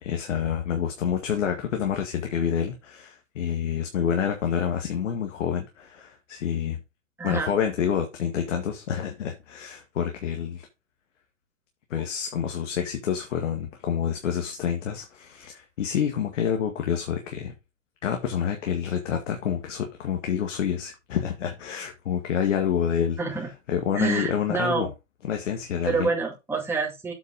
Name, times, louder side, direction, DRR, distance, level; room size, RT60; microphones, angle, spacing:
voice 1, 0.0-6.8 7.2-10.7 11.9-17.5 18.0-23.2 23.7-24.9 25.2-26.1, left 8 dB, 70° left, 2.0 m, -28 dB
voice 2, 7.2-7.5 23.2-23.5 23.9-24.9 25.9-27.1, right 4 dB, 5° right, 2.1 m, -27 dB
8.4 x 4.5 x 5.0 m
hypercardioid pair, 140°, 39 cm